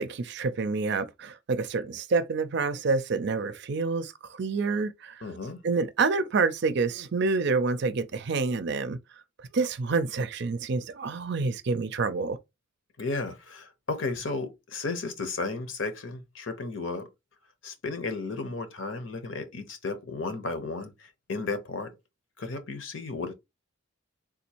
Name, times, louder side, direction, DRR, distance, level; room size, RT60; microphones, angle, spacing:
voice 1, 0.0-5.2 5.6-9.0 9.5-12.4, right 4 dB, 60° right, 0.5 m, -28 dB
voice 2, 5.2-5.6 13.0-17.1 17.6-21.9 22.4-23.3, left 3 dB, 70° left, 0.9 m, -34 dB
3.7 x 2.6 x 2.9 m
head